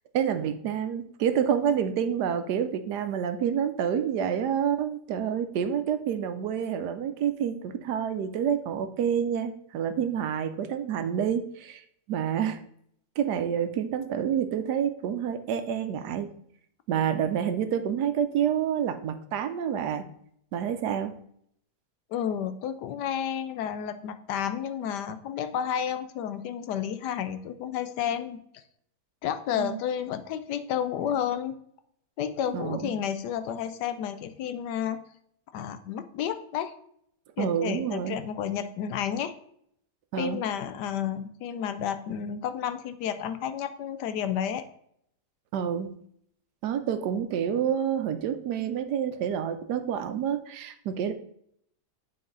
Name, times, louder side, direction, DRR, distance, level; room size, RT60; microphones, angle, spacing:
voice 1, 0.1-11.8 12.1-12.6 13.2-16.3 16.9-20.1 20.5-21.1 29.6-29.8 32.5-33.0 37.4-38.2 40.1-40.5 45.5-45.9 46.6-51.1, right 8 dB, 75° right, 10 dB, 1.2 m, -28 dB
voice 2, 22.1-28.4 29.2-31.5 32.2-35.0 35.5-36.7 37.4-39.3 40.2-44.7, left 9 dB, 80° left, 11 dB, 1.2 m, -31 dB
9.6 x 4.0 x 3.9 m, 0.69 s
omnidirectional pair, 1.8 m